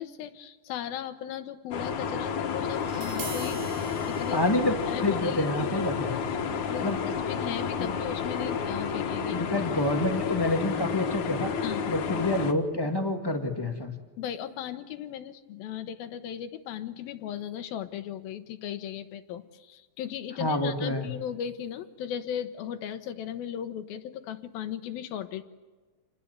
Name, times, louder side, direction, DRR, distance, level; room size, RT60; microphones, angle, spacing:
voice 1, 0.0-4.4 4.9-6.3 6.7-9.4 11.6-11.8 14.2-25.4, left 10 dB, 80° left, 10 dB, 3.0 m, -37 dB
sound 1, 1.7-12.5, left 6 dB, 60° left, 2.9 m, -31 dB
Tap, 2.7-8.9, right 3 dB, 90° right, 6.7 m, -46 dB
voice 2, 4.3-6.2 6.8-7.0 7.8-8.0 9.3-11.5 11.9-13.9 20.4-21.1, left 1 dB, 15° left, 4 dB, 0.9 m, -28 dB
28.5 x 20.5 x 8.1 m, 1.3 s
omnidirectional pair, 4.3 m